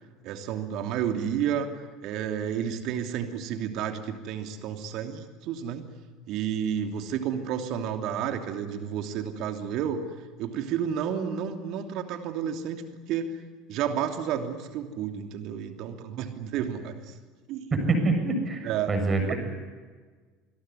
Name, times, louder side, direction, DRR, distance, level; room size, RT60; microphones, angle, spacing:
voice 1, 0.2-1.7 2.0-5.9 6.3-10.0 10.4-12.8 13.1-13.4 13.7-17.1 17.5-17.7 18.6-19.3, right 8 dB, 50° right, 5 dB, 3.0 m, -31 dB
voice 2, 17.7-19.3, right 3 dB, 25° right, 5 dB, 7.3 m, -25 dB
26.5 x 21.5 x 9.8 m, 1.4 s
figure-of-eight pair, 70°, 0 cm